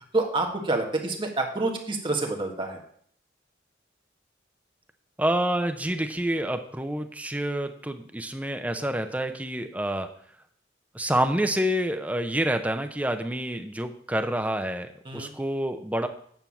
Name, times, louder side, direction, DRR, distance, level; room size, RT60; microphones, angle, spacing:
voice 1, 0.1-2.8 15.0-15.3, right 2 dB, 25° right, 2 dB, 1.4 m, -27 dB
voice 2, 5.2-10.1 10.9-16.1, right 1 dB, 10° right, 7 dB, 0.5 m, -28 dB
9.1 x 4.6 x 7.0 m, 0.63 s
head